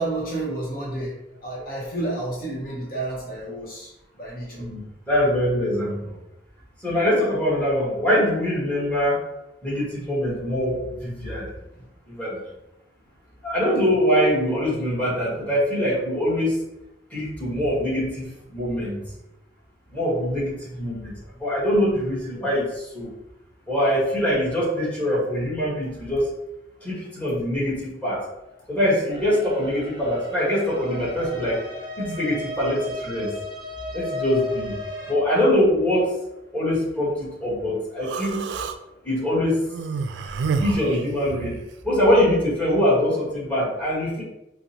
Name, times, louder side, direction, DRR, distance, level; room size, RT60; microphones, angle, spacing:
voice 1, 0.0-4.7 11.8-11.9, right 2 dB, 50° left, -5 dB, 0.9 m, -31 dB
voice 2, 5.1-6.2 6.8-9.2 9.6-11.5 12.1-12.4 13.4-16.6 17.1-19.0 19.9-21.1 21.4-23.1 23.7-26.3 26.8-28.2 28.7-31.6 32.0-33.3 33.9-34.8 35.1-36.1 36.5-38.4 39.0-39.7 40.6-41.5 41.8-44.2, equal, 10° left, -8 dB, 1.4 m, -23 dB
sound 1, 29.1-35.1, left 1 dB, 25° right, 0.7 m, -35 dB
Human voice, 38.0-38.8 39.7-41.7, right 5 dB, 75° right, 0.3 m, -29 dB
4.8 x 2.1 x 2.8 m, 0.92 s
head